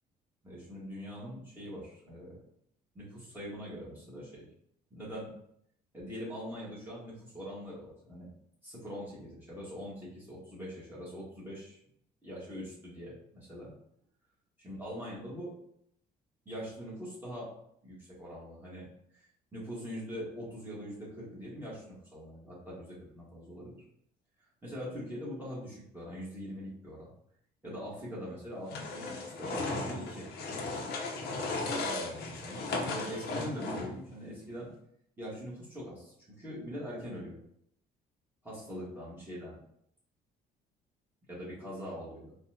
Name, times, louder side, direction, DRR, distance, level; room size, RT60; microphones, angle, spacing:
voice 1, 0.4-2.4 2.9-4.4 4.9-5.3 5.9-8.3 8.6-11.8 12.2-13.7 14.6-15.5 16.4-17.5 17.8-18.8 19.1-19.2 19.5-23.7 24.6-27.1 27.6-30.8 31.7-34.7 35.2-37.4 38.4-39.6 41.3-42.3, equal, 10° right, -8 dB, 1.5 m, -42 dB
sound 1, 28.7-34.1, left 3 dB, 70° left, 0.8 m, -36 dB
4.1 x 2.4 x 2.7 m, 0.70 s
cardioid pair, 110°, 17 cm